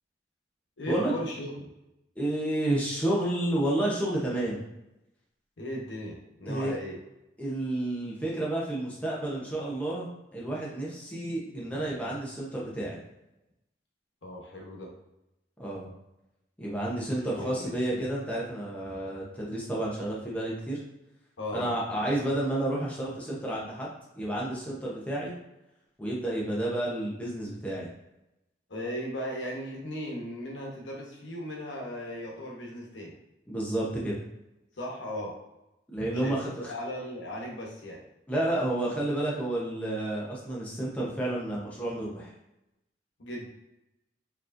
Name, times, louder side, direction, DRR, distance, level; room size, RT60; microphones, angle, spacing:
voice 1, 0.8-1.7 5.6-7.0 14.2-14.9 17.2-17.8 21.4-21.7 28.7-33.1 34.8-35.3 36.1-36.3 36.7-38.0 43.2-43.5, left 1 dB, 85° left, -1 dB, 1.0 m, -37 dB
voice 2, 2.2-4.6 6.5-6.8 7.4-13.0 15.6-15.9 16.6-20.8 21.5-25.3 26.0-27.9 33.5-34.1 35.9-36.7 38.3-42.3, right 1 dB, 5° left, -5 dB, 0.8 m, -30 dB
4.5 x 3.0 x 2.5 m, 0.91 s
head